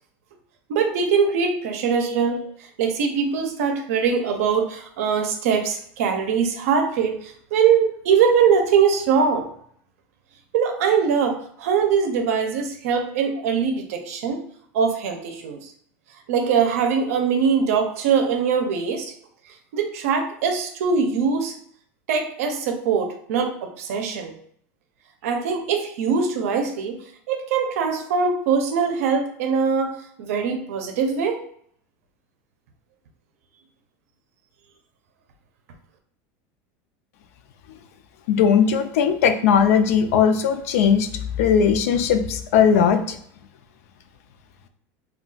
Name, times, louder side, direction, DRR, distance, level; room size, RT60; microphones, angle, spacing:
voice 1, 0.7-2.4 2.8-9.5 10.5-14.4 14.7-15.7 16.3-19.1 19.7-21.5 22.1-24.3 25.2-27.0 27.3-31.4, right 6 dB, 90° right, 5 dB, 0.5 m, -22 dB
voice 2, 38.3-41.1 41.4-43.2, left 7 dB, 90° left, 8 dB, 0.4 m, -18 dB
2.3 x 2.2 x 3.8 m, 0.64 s
supercardioid pair, 155°, 8 cm